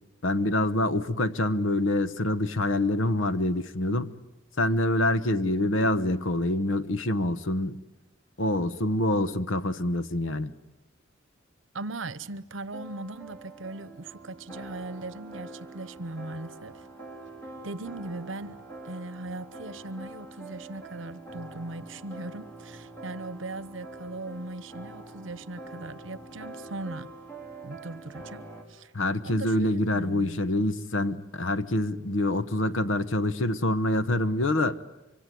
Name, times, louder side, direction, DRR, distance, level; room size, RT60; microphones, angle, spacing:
voice 1, 0.2-4.2 4.6-7.8 8.4-10.5 28.9-34.8, left 1 dB, 75° left, 1.0 m, -26 dB
voice 2, 11.7-16.8 17.6-18.6 18.8-27.1 27.6-28.9 29.2-30.4, right 2 dB, 70° right, 1.0 m, -39 dB
sound 1, 12.2-28.6, right 2 dB, 10° left, 4.4 m, -45 dB
25.0 x 25.0 x 9.3 m
head